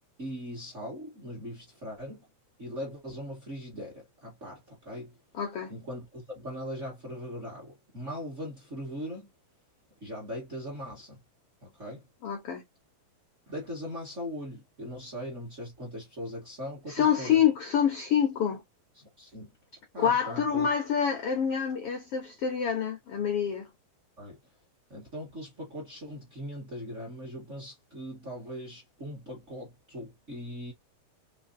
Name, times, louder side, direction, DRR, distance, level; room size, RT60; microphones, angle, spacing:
voice 1, 0.2-2.2 2.6-5.2 5.7-9.3 10.0-11.2 11.6-12.0 13.5-17.4 18.9-19.5 19.9-20.7 24.2-24.4 24.9-30.7, equal, 30° right, 1.4 m, -40 dB
voice 2, 5.3-5.7 12.2-12.6 16.9-18.6 20.0-23.7, left 8 dB, 80° left, 1.3 m, -27 dB
5.1 x 3.2 x 2.6 m
omnidirectional pair, 4.0 m